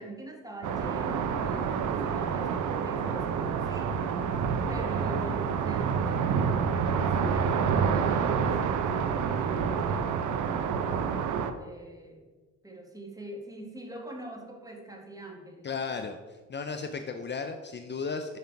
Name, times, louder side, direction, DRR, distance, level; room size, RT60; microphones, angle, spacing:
voice 1, 0.0-3.9 4.7-11.0 11.6-12.3 12.6-15.6, right 1 dB, 10° right, 1 dB, 2.0 m, -43 dB
sound 1, 0.6-11.5, right 6 dB, 75° right, 0.8 m, -28 dB
voice 2, 15.6-16.2 16.5-18.4, left 5 dB, 35° left, 6 dB, 0.7 m, -34 dB
9.4 x 5.1 x 5.8 m, 1.3 s
cardioid pair, 90°, 30 cm